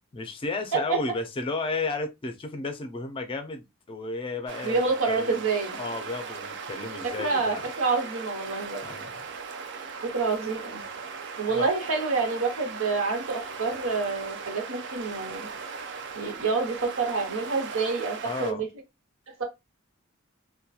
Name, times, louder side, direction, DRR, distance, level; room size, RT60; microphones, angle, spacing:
voice 1, 0.1-5.4 5.8-7.6 8.8-9.1 11.5-11.7 18.2-18.6, left 3 dB, 25° left, 0.4 m, -33 dB
sound 1, 4.5-18.5, right 5 dB, 60° right, 0.4 m, -38 dB
voice 2, 4.6-5.8 7.0-8.8 10.1-10.8 11.4-15.5 16.1-18.7 19.4-19.5, right 4 dB, 85° right, 0.9 m, -27 dB
2.8 x 2.2 x 2.2 m
head